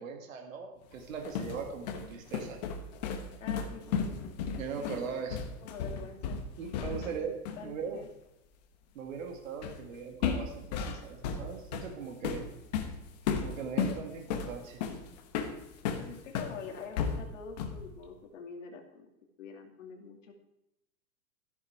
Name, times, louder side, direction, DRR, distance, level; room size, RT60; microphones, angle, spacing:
voice 1, 0.0-2.6 4.6-5.4 6.6-7.3 7.6-8.0 8.9-12.4 13.4-14.8, right 6 dB, 60° right, 3 dB, 2.2 m, -40 dB
sound 1, 1.0-7.2 7.5-7.7 9.6-9.9 10.2-16.6 17.0-17.9, left 6 dB, 30° left, 1.1 m, -34 dB
voice 2, 3.4-4.2 4.7-5.0 5.6-6.4 6.9-8.1 16.0-19.1 19.4-20.4, left 5 dB, 55° left, 3 dB, 2.7 m, -46 dB
13.5 x 11.0 x 4.7 m, 0.89 s
supercardioid pair, 180°, 45 cm